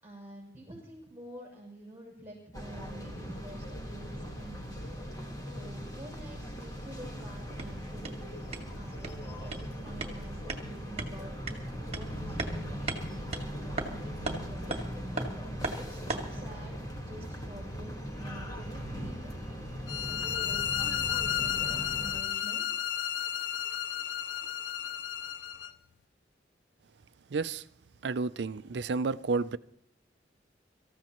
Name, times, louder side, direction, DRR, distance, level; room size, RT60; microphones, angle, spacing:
voice 1, 0.0-4.8 5.4-8.2 8.7-11.4 11.9-14.8 15.8-19.5 19.8-22.7 24.4-24.5, right 1 dB, 10° right, 6.4 m, -48 dB
sound 1, 2.5-22.2, equal, 20° left, 1.6 m, -39 dB
sound 2, 7.3-16.4, right 2 dB, 35° right, 2.1 m, -40 dB
sound 3, 19.9-25.7, left 10 dB, 70° left, 0.5 m, -33 dB
voice 2, 27.3-27.6 28.0-29.6, right 4 dB, 65° right, 0.5 m, -31 dB
25.0 x 14.5 x 3.0 m
head